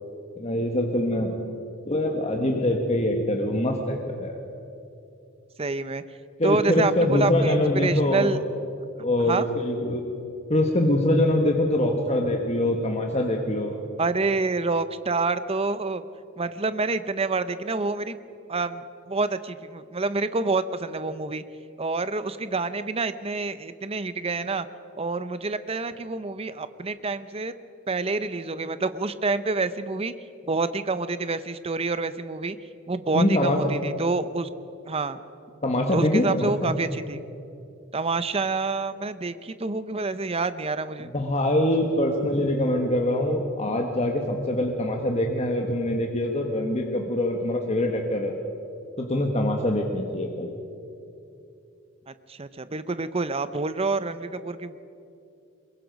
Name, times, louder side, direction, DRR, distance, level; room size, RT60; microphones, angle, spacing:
voice 1, 0.4-1.3 1.8-4.4 6.4-8.3 9.0-10.1 10.5-13.8 33.1-33.6 35.6-36.7 41.1-48.3 49.0-50.5, left 1 dB, 30° left, 2 dB, 1.4 m, -24 dB
voice 2, 5.6-6.0 6.4-8.4 9.2-9.5 14.0-16.0 16.4-18.2 18.5-21.4 21.8-24.7 24.9-27.5 27.9-30.1 30.4-32.6 32.9-34.5 34.9-35.2 35.9-37.2 37.9-41.1 52.1-54.8, right 3 dB, 30° right, 13 dB, 0.7 m, -27 dB
22.5 x 22.0 x 5.3 m, 2.7 s
head